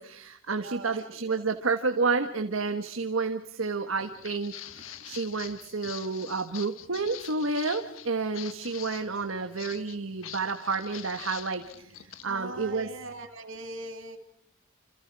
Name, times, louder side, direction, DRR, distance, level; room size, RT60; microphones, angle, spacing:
voice 1, 0.0-12.0 12.2-12.9, right 4 dB, 85° right, 6 dB, 1.4 m, -30 dB
voice 2, 0.6-1.4 4.7-5.6 5.8-5.9 9.7-9.8 12.2-14.2, right 2 dB, 70° right, 4 dB, 2.6 m, -42 dB
Walk footsteps, 3.9-12.3, left 12 dB, 75° left, 1.3 m, -44 dB
28.5 x 27.5 x 4.8 m, 0.72 s
head